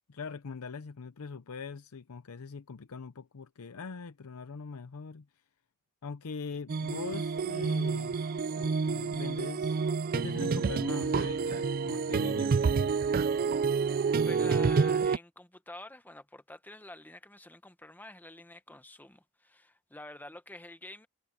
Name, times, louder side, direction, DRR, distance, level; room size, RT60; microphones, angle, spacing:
voice 1, 0.1-5.3 6.0-8.2 8.6-9.8 10.1-12.8, left 5 dB, 85° left, 0.6 m, -42 dB
sound 1, 6.7-15.2, right 5 dB, 45° right, 0.4 m, -28 dB
voice 2, 14.2-21.1, left 1 dB, 10° left, 1.2 m, -48 dB
head